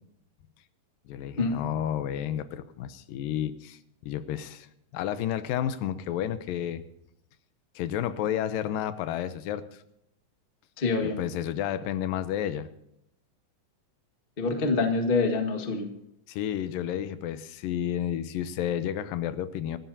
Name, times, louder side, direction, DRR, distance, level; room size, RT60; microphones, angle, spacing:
voice 1, 1.1-4.7 4.9-6.8 7.8-9.7 11.2-12.7 16.3-19.8, left 10 dB, 85° left, 12 dB, 2.5 m, -31 dB
voice 2, 10.8-11.2 14.4-15.9, left 3 dB, 30° left, 4 dB, 0.9 m, -26 dB
26.0 x 13.5 x 2.8 m, 0.78 s
omnidirectional pair, 3.9 m